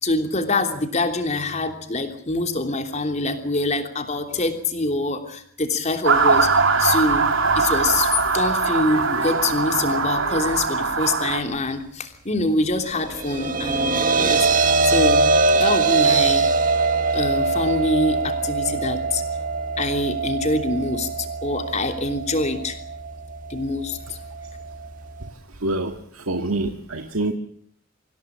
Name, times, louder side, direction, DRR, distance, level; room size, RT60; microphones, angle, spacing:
voice 1, 0.0-6.5 6.8-7.2 7.5-15.2 15.5-16.5 17.1-19.2 19.8-22.8 23.5-24.2, left 2 dB, 35° left, 6 dB, 3.2 m, -25 dB
Motor vehicle (road) / Siren, 6.0-11.4, right 4 dB, 70° right, 3.1 m, -21 dB
sound 1, 12.9-25.3, right 3 dB, 40° right, 1.6 m, -22 dB
voice 2, 25.6-27.3, right 2 dB, 85° right, 6 dB, 1.8 m, -26 dB
25.5 x 16.5 x 8.7 m, 0.64 s
head